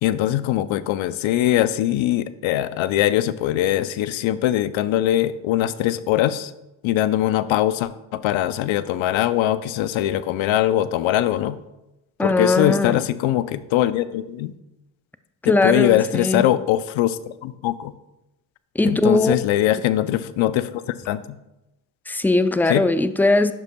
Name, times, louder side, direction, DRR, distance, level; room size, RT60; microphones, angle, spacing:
voice 1, 0.0-6.5 6.8-11.6 12.2-14.5 15.4-17.9 18.8-20.7 21.1-21.4 22.7-22.8, left 13 dB, 75° left, 15 dB, 0.6 m, -21 dB
voice 2, 12.2-13.0 15.4-16.4 18.7-19.4 22.1-23.5, left 2 dB, 5° left, 11 dB, 0.4 m, -19 dB
11.0 x 6.5 x 2.2 m, 0.94 s
supercardioid pair, 45°, 48 cm